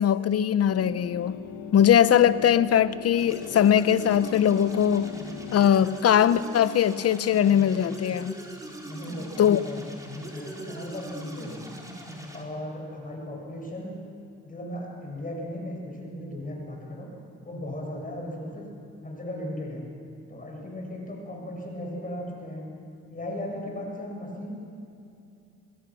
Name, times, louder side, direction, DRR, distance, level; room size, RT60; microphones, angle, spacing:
voice 1, 0.0-1.4 1.7-5.2 5.5-8.4 9.4-9.6, left 9 dB, 55° left, 0.9 m, -21 dB
sound 1, 0.7-5.7, left 7 dB, 85° left, 1.5 m, -39 dB
sound 2, 3.2-12.4, right 1 dB, 10° right, 4.2 m, -42 dB
voice 2, 8.8-11.6 12.3-14.0 14.4-17.1 17.4-18.7 19.0-19.9 20.3-22.7 23.1-24.5, left 1 dB, 30° left, 7.2 m, -36 dB
26.5 x 20.5 x 6.3 m
cardioid pair, 90°, 30 cm